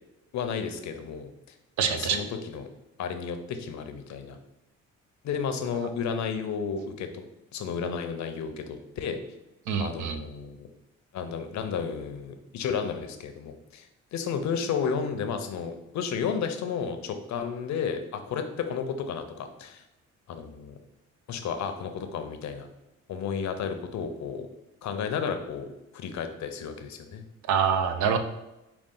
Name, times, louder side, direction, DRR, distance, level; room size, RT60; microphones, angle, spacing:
voice 1, 0.3-1.3 1.9-2.7 3.0-4.4 5.2-7.2 7.5-9.2 9.8-10.7 11.1-19.8 20.3-20.8 21.3-22.7 23.1-24.5 24.8-25.7 25.9-27.2, left 6 dB, 65° left, 7 dB, 0.6 m, -32 dB
voice 2, 1.8-2.2 9.7-10.2 27.5-28.2, right 7 dB, 75° right, 8 dB, 0.6 m, -25 dB
5.1 x 2.4 x 3.7 m, 0.95 s
cardioid pair, 90°, 30 cm